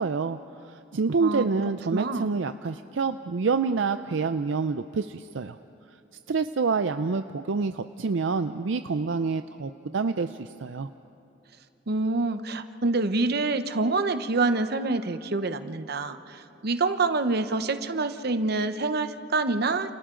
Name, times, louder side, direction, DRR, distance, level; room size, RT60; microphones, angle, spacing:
voice 1, 0.0-5.6 6.3-10.9, right 4 dB, 75° right, 9 dB, 0.5 m, -27 dB
voice 2, 1.9-2.3 11.9-19.9, right 3 dB, 55° right, 10 dB, 0.9 m, -26 dB
30.0 x 29.0 x 3.8 m, 2.8 s
head